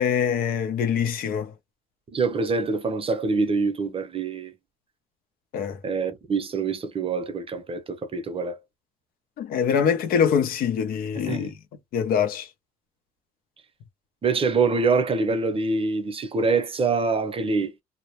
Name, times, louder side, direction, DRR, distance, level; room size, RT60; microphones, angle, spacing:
voice 1, 0.0-1.5 5.5-5.8 9.4-11.6 11.9-12.5, left 7 dB, 75° left, 0.6 m, -24 dB
voice 2, 2.1-4.5 5.8-8.6 11.3-11.5 14.2-17.7, right 4 dB, 40° right, 0.7 m, -25 dB
2.1 x 2.1 x 2.9 m
supercardioid pair, 65°, 15 cm